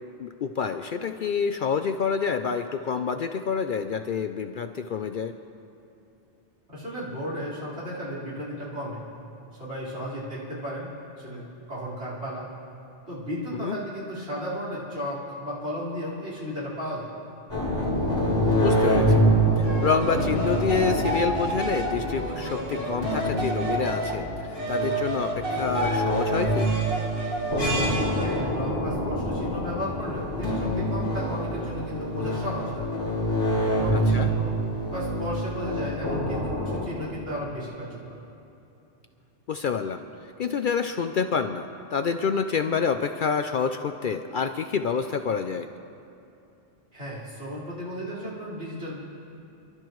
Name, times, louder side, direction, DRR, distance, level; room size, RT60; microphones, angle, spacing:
voice 1, 0.2-5.3 13.5-13.8 18.5-19.2 19.6-26.7 33.9-34.3 39.5-40.0 40.4-41.6 41.9-45.7, left 6 dB, 60° left, 8 dB, 0.6 m, -28 dB
voice 2, 6.7-9.0 9.6-10.9 11.2-12.5 13.1-17.2 28.2-32.9 33.5-34.6 34.9-38.2 46.9-49.0, equal, 70° right, -7 dB, 4.7 m, -34 dB
sound 1, 17.5-36.8, equal, 20° left, 4.6 m, -26 dB
sound 2, 19.6-24.2 24.6-27.7, right 2 dB, 50° right, 2.0 m, -31 dB
30.0 x 12.0 x 3.1 m, 2.8 s
omnidirectional pair, 1.2 m